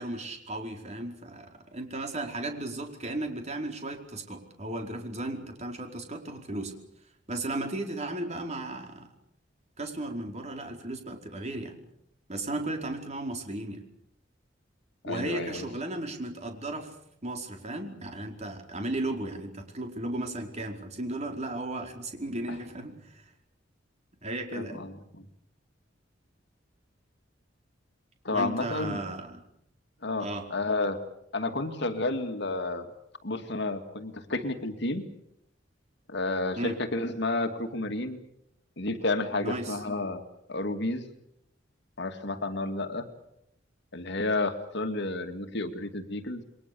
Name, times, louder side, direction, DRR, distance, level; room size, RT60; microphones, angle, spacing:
voice 1, 0.0-6.7 7.3-9.1 9.8-11.8 12.3-13.8 15.0-17.0 17.2-23.3 24.2-24.8 28.3-29.4 30.2-30.5 36.6-36.8 39.4-39.8, right 1 dB, 35° right, 3 dB, 4.8 m, -35 dB
voice 2, 15.0-15.7 24.5-25.2 28.2-29.0 30.0-31.0 31.3-32.9 33.2-35.0 36.1-38.2 38.8-40.2 40.5-41.1 42.0-43.0 43.9-46.4, left 2 dB, 65° left, 7 dB, 2.4 m, -31 dB
29.0 x 22.5 x 7.0 m, 0.77 s
head